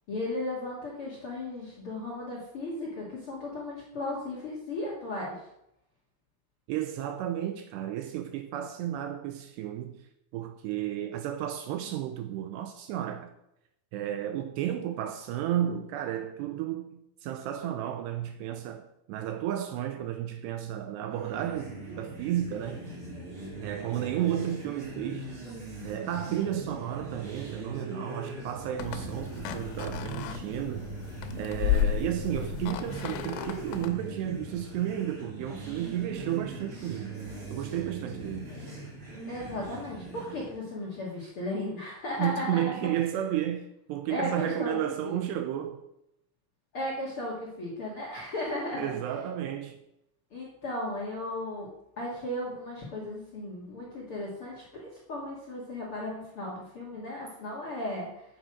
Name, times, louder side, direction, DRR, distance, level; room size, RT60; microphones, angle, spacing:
voice 1, 0.1-5.4 39.3-42.6 44.1-44.8 45.0-45.2 46.7-49.0 50.3-51.7 52.0-58.2, left 1 dB, 45° left, 1.8 m, -35 dB
voice 2, 6.7-10.0 10.3-13.3 13.9-22.8 23.6-25.3 25.8-30.9 31.4-37.2 37.5-38.5 42.2-45.8 48.7-49.8, right 11 dB, 80° right, 2.6 m, -32 dB
sound 1, 21.1-40.6, right 2 dB, 30° right, 3.3 m, -41 dB
sound 2, 28.8-33.9, left 11 dB, 85° left, 3.3 m, -33 dB
9.5 x 8.1 x 6.1 m
omnidirectional pair, 5.4 m